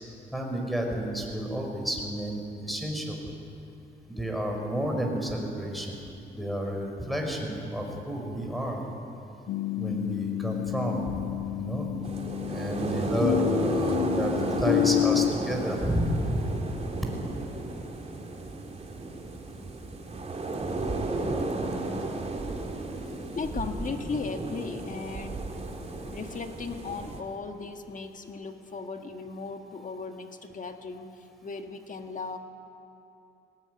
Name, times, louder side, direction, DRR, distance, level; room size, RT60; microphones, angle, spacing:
voice 1, 0.3-3.2 4.1-6.0 6.3-8.8 9.8-11.2 11.5-11.9 12.5-14.3 14.6-16.5, equal, ahead, 1 dB, 5.6 m, -31 dB
sound 1, 9.5-15.3, left 14 dB, 90° left, 0.7 m, -29 dB
sound 2, 12.0-27.2, right 2 dB, 30° right, 2.8 m, -33 dB
voice 2, 23.4-25.5 26.1-32.4, left 4 dB, 40° left, 5 dB, 1.9 m, -37 dB
19.0 x 19.0 x 9.6 m, 2.9 s
cardioid pair, 90°, 20 cm